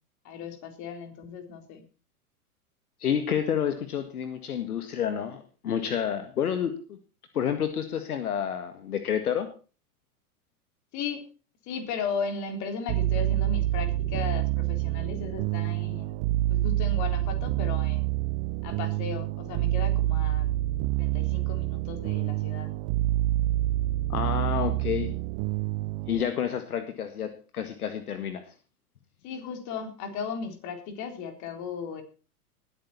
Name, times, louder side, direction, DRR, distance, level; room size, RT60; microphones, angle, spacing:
voice 1, 0.2-1.8 10.9-11.3 11.6-16.2 16.5-18.2 18.6-20.5 21.0-22.7 29.2-32.0, left 5 dB, 40° left, 6 dB, 3.7 m, -36 dB
voice 2, 3.0-7.0 7.3-9.5 24.1-25.1 26.1-28.4, left 8 dB, 70° left, 8 dB, 1.9 m, -29 dB
sound 1, 12.9-26.2, right 15 dB, 35° right, 0.8 m, -27 dB
20.0 x 9.0 x 4.2 m, 0.35 s
figure-of-eight pair, 100°, 46 cm